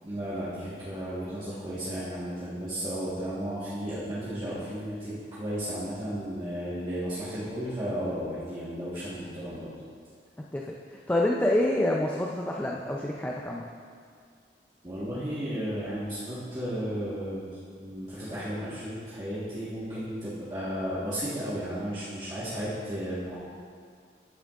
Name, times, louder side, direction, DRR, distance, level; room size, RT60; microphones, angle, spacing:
voice 1, 0.0-9.7 14.8-17.5 17.8-23.4, equal, 25° right, -12 dB, 1.5 m, -34 dB
voice 2, 10.5-13.6, left 1 dB, 10° left, -2 dB, 0.4 m, -27 dB
13.5 x 7.0 x 2.5 m, 2.1 s
head